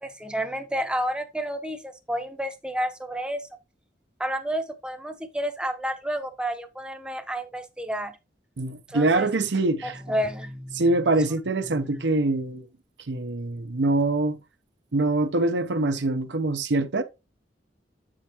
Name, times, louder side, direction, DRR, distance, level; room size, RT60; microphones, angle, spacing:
voice 1, 0.0-3.5 4.2-8.1 8.9-9.3 9.8-10.9 11.7-12.1, equal, 5° right, 0.6 m, -30 dB
voice 2, 8.6-10.0 10.7-12.7 13.1-14.4 14.9-17.0, right 2 dB, 80° right, 0.7 m, -24 dB
7.2 x 5.0 x 2.9 m
head